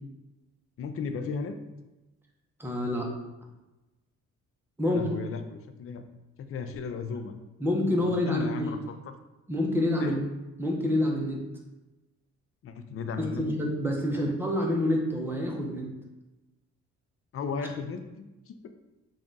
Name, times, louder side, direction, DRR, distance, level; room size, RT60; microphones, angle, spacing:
voice 1, 0.8-1.6 4.8-6.0 6.4-7.4 8.0-8.8 10.0-10.1 12.6-13.4 14.1-14.2 17.3-18.7, left 5 dB, 50° left, 8 dB, 0.4 m, -35 dB
voice 2, 2.6-3.1 4.8-5.1 7.6-8.7 9.5-10.2 10.6-11.4 13.2-15.8, left 1 dB, 5° right, 0 dB, 0.7 m, -27 dB
3.6 x 2.4 x 3.8 m, 1.0 s
cardioid pair, 90°, 30 cm